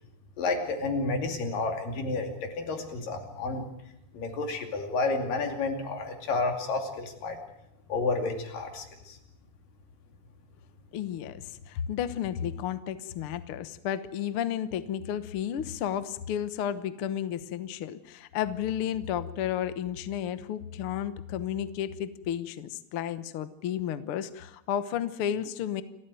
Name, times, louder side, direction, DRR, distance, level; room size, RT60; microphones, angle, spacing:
voice 1, 0.4-3.6 4.1-7.4 7.9-9.2, left 3 dB, 65° left, 5 dB, 4.2 m, -30 dB
voice 2, 10.9-25.8, left 10 dB, 85° left, 13 dB, 1.2 m, -32 dB
29.0 x 13.5 x 9.2 m, 0.87 s
omnidirectional pair, 4.2 m